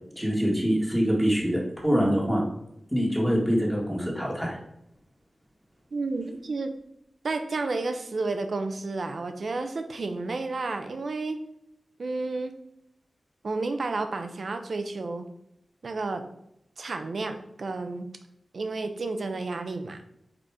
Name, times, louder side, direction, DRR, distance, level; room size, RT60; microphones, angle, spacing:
voice 1, 0.2-2.4 2.9-4.6, equal, ahead, -2 dB, 1.9 m, -24 dB
voice 2, 5.9-6.7 7.2-11.4 12.0-12.6 13.4-15.3 15.8-16.3 16.8-18.1 18.5-20.0, right 3 dB, 65° right, 7 dB, 0.8 m, -31 dB
5.1 x 4.2 x 4.8 m, 0.79 s
wide cardioid pair, 95°, 0 cm